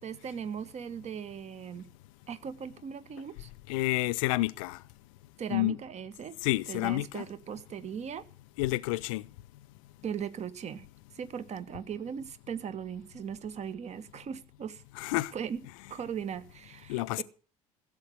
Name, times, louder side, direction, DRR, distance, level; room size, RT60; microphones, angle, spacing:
voice 1, 0.0-1.9 2.3-3.5 5.4-6.4 6.7-8.2 10.0-10.9 11.1-14.8 15.3-15.6 15.9-17.2, right 7 dB, 35° right, 1.4 m, -38 dB
voice 2, 3.7-4.8 5.5-5.8 6.4-7.2 8.6-9.2 15.0-15.3 16.9-17.2, left 19 dB, 60° left, 0.7 m, -29 dB
15.5 x 7.9 x 8.0 m
figure-of-eight pair, 65°, 19 cm